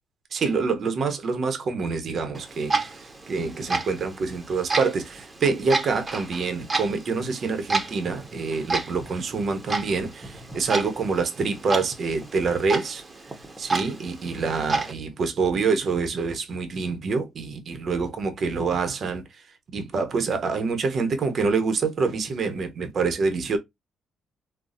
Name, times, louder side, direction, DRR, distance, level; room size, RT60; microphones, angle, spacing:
voice 1, 0.3-13.0 13.6-19.2 19.7-23.6, right 4 dB, 55° right, 0.9 m, -26 dB
Clock, 2.3-14.9, right 3 dB, 25° right, 1.0 m, -31 dB
4.0 x 2.2 x 2.4 m
cardioid pair, 90°, 0 cm